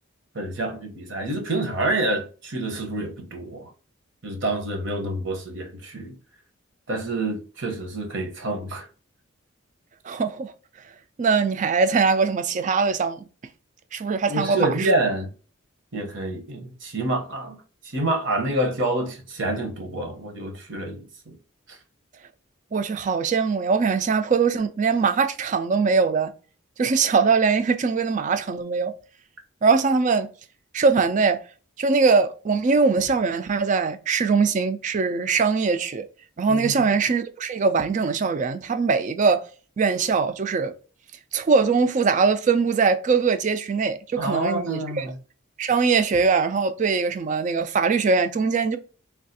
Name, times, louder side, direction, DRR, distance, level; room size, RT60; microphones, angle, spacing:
voice 1, 0.3-3.7 4.2-6.1 6.9-8.9 14.3-15.3 15.9-17.6 17.8-21.4 21.7-21.8 36.5-36.9 44.2-45.2, right 2 dB, 60° right, 0.9 m, -27 dB
voice 2, 10.0-10.5 11.2-13.3 13.9-14.9 22.7-26.3 26.8-28.9 29.6-30.3 30.7-31.4 31.8-36.1 36.4-39.4 39.8-40.7 41.3-45.1 45.6-48.8, right 5 dB, 35° right, 0.3 m, -22 dB
3.4 x 2.3 x 2.6 m
head